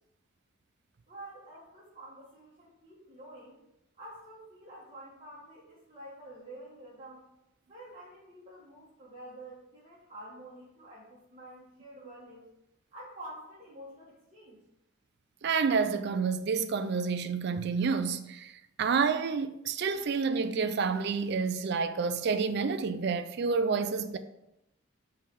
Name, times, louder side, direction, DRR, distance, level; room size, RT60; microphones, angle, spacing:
voice 1, 1.1-3.6 4.0-7.3 7.7-12.5 12.9-14.6, right 1 dB, 30° right, 1.3 m, -48 dB
voice 2, 15.4-18.5 18.8-24.2, right 5 dB, 55° right, 0.4 m, -29 dB
5.5 x 3.3 x 5.3 m
head